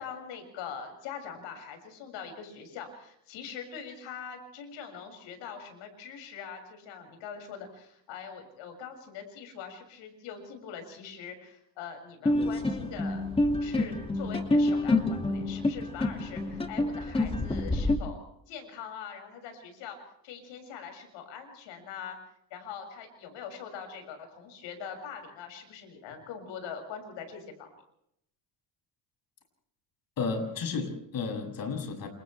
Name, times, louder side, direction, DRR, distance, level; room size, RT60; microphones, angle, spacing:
voice 1, 0.0-13.2 13.5-20.0 20.2-22.2 22.5-27.7, left 7 dB, 85° left, 5 dB, 7.1 m, -43 dB
sound 1, 12.3-18.0, left 2 dB, 15° left, 2.5 m, -27 dB
voice 2, 30.2-32.1, left 4 dB, 50° left, 4 dB, 7.5 m, -32 dB
29.0 x 28.5 x 3.4 m, 0.74 s
cardioid pair, 120°, 43 cm